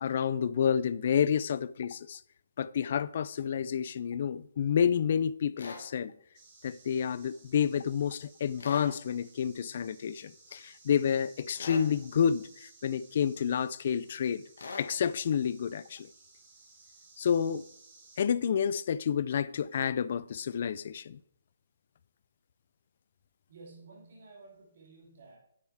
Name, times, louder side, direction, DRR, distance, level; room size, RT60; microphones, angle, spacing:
voice 1, 0.0-2.2 2.6-6.1 6.6-14.4 14.8-16.1 17.2-17.6 18.2-21.2, left 8 dB, 40° left, 0.4 m, -29 dB
sound 1, 5.6-5.8 8.6-8.9 11.6-11.9 14.6-14.9, left 4 dB, 65° left, 1.8 m, -41 dB
sound 2, 6.3-18.2, right 3 dB, 25° right, 2.1 m, -58 dB
voice 2, 23.5-25.4, right 3 dB, 45° right, 3.1 m, -53 dB
9.6 x 7.8 x 3.5 m
hypercardioid pair, 165°, 0 cm